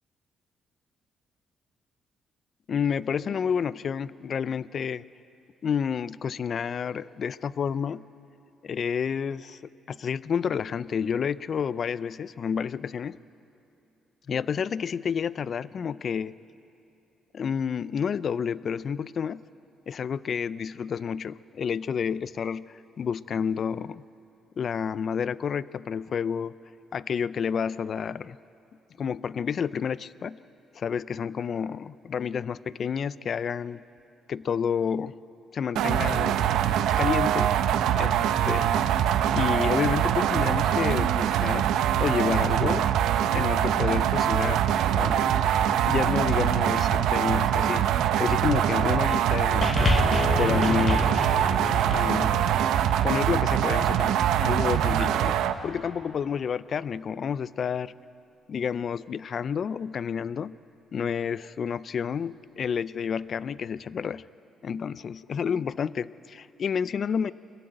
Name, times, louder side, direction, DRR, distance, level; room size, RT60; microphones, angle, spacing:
voice 1, 2.7-5.0 5.6-8.0 8.6-9.6 9.9-13.2 14.3-16.3 17.3-19.4 19.9-24.0 24.6-26.5 26.9-28.4 29.0-30.4 30.8-33.8 34.3-35.2 35.5-36.4 37.0-37.5 38.0-38.2 38.4-38.8 39.3-41.7 42.0-42.9 43.2-45.5 45.8-50.1 50.4-51.3 51.9-52.5 53.0-54.1 54.4-55.4 55.6-57.9 58.5-60.5 60.9-64.2 64.6-67.3, left 7 dB, 55° left, 18 dB, 0.4 m, -29 dB
sound 1, 35.8-55.5, right 10 dB, 85° right, 0.7 m, -23 dB
sound 2, 49.6-54.2 55.0-55.1, left 3 dB, 30° left, 1.1 m, -29 dB
23.0 x 14.5 x 8.9 m, 2.8 s
cardioid pair, 90°, 0 cm